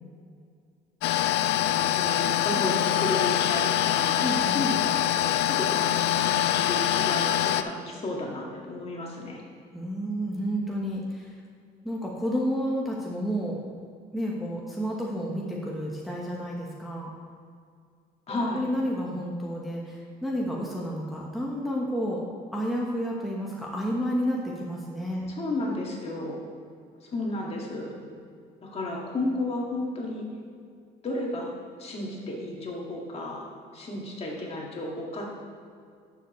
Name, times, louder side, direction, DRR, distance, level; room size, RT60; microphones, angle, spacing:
sound 1, 1.0-7.6, left 12 dB, 90° left, 0.4 m, -24 dB
voice 1, 1.7-9.4 18.3-18.7 25.3-26.5 27.0-28.0 28.6-30.2 31.0-31.5 31.8-33.5 33.7-35.3, left 2 dB, 35° left, -2 dB, 2.0 m, -33 dB
voice 2, 4.2-4.6 9.7-11.3 11.8-13.6 14.1-17.1 18.3-22.2 22.5-25.3, equal, ahead, -4 dB, 1.2 m, -30 dB
11.5 x 7.1 x 3.2 m, 2.2 s
cardioid pair, 110°, 17 cm